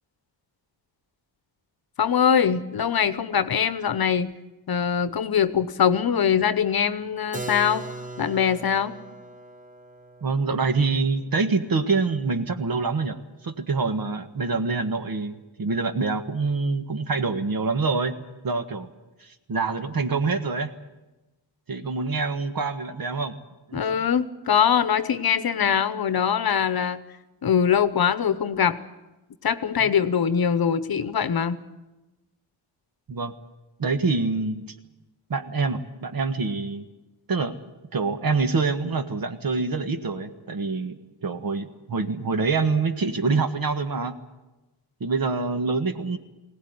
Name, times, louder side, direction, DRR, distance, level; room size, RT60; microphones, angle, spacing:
voice 1, 2.0-4.3 4.7-7.8 8.2-8.9 23.7-27.0 27.4-28.8 29.4-31.6, left 7 dB, 50° left, 13 dB, 1.1 m, -22 dB
Keyboard (musical), 7.3-12.9, right 3 dB, 15° right, 1.1 m, -40 dB
voice 2, 10.2-18.2 18.4-18.9 19.2-20.7 21.7-23.4 23.7-23.8 29.8-29.9 33.1-33.3 33.8-34.6 35.3-36.8 37.3-37.6 37.9-41.0 41.2-44.2 45.0-46.2, right 4 dB, 50° right, 8 dB, 1.6 m, -26 dB
20.5 x 17.5 x 9.5 m, 1.1 s
cardioid pair, 105°, 46 cm